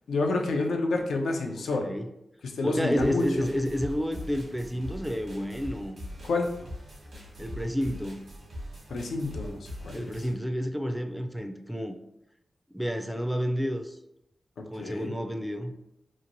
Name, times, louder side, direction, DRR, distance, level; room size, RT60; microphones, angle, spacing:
voice 1, 0.1-1.9 2.4-3.5 6.2-6.5 8.9-10.1 14.8-15.1, left 3 dB, 85° left, 2 dB, 0.4 m, -29 dB
voice 2, 2.6-6.0 7.4-8.2 9.9-12.0 12.7-14.0 14.7-15.7, equal, 5° right, 6 dB, 0.4 m, -30 dB
sound 1, 3.0-10.3, equal, 75° right, 1.2 m, -42 dB
2.9 x 2.5 x 2.5 m, 0.84 s
cardioid pair, 60°, 0 cm